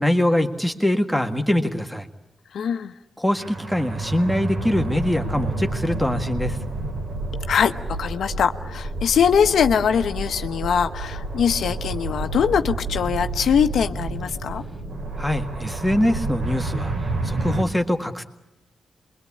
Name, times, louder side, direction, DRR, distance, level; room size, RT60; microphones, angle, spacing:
voice 1, 0.0-2.1 3.2-6.6 15.2-18.2, left 1 dB, ahead, 3 dB, 1.8 m, -23 dB
voice 2, 2.5-2.9 7.5-14.6, left 7 dB, 75° left, 8 dB, 1.0 m, -22 dB
sound 1, 3.3-17.6, right 2 dB, 60° right, 3.7 m, -30 dB
sound 2, 12.2-17.4, right 5 dB, 85° right, 4.7 m, -35 dB
27.5 x 22.5 x 8.6 m, 0.96 s
cardioid pair, 90°, 0 cm